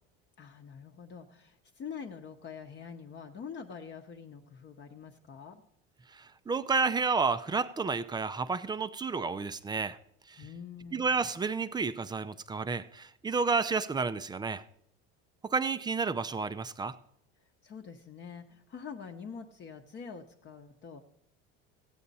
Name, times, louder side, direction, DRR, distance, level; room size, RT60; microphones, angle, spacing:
voice 1, 0.4-5.6 10.4-11.1 17.6-21.0, left 6 dB, 35° left, 0.9 m, -45 dB
voice 2, 6.1-10.0 10.3-10.5 10.9-14.6 15.4-17.0, right 4 dB, 15° right, 0.4 m, -31 dB
15.0 x 8.7 x 4.1 m
supercardioid pair, 105°, 31 cm